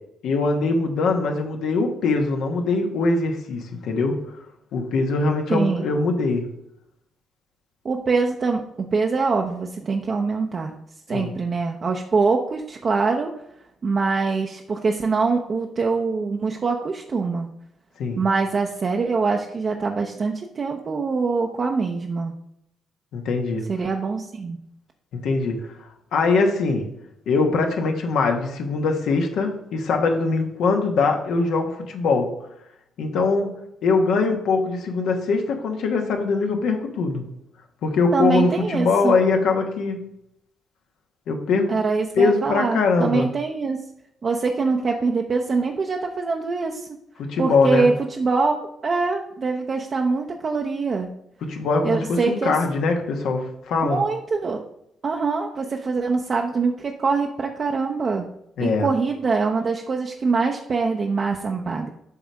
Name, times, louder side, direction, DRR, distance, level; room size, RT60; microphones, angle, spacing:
voice 1, 0.2-4.2 4.7-6.4 11.1-11.3 18.0-18.2 23.1-23.6 25.2-25.6 26.1-26.9 27.3-32.3 33.0-33.5 33.8-37.2 37.8-40.0 41.3-41.7 42.2-43.3 47.2-47.9 51.5-54.0 58.6-58.9, left 4 dB, 75° left, 4 dB, 1.2 m, -22 dB
voice 2, 5.5-5.9 7.8-10.7 11.1-13.3 13.8-17.5 18.2-22.3 23.7-24.6 38.1-39.2 41.7-43.9 44.2-46.9 47.4-48.6 48.8-51.1 51.8-52.5 53.8-54.6 55.0-58.3 58.6-61.9, right 4 dB, 45° right, 2 dB, 0.6 m, -24 dB
7.2 x 3.4 x 6.2 m, 0.79 s
cardioid pair, 90°, 0 cm